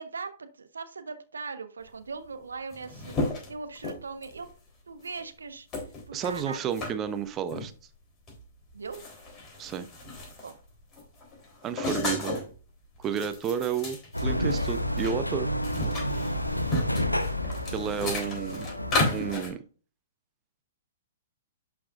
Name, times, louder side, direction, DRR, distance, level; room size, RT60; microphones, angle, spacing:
voice 1, 0.0-3.2 3.5-4.5 4.9-5.7 6.1-6.8 8.7-9.0 10.4-10.6, right 4 dB, 70° right, 1.1 m, -40 dB
sound 1, 2.2-2.3 2.5-4.5 5.0-5.2 5.7-6.9 7.5-7.7 8.3-8.4 8.7-10.6 10.9-12.5 12.9-15.1 15.4-19.5, left 2 dB, 20° left, 3.7 m, -33 dB
voice 2, 6.1-7.7 9.6-9.9 11.6-12.4 13.0-15.5 17.7-18.7 19.1-19.6, right 8 dB, 20° right, 0.9 m, -31 dB
sound 2, 14.1-19.3, left 1 dB, 85° left, 0.8 m, -30 dB
11.5 x 6.0 x 2.5 m
figure-of-eight pair, 115°, 0 cm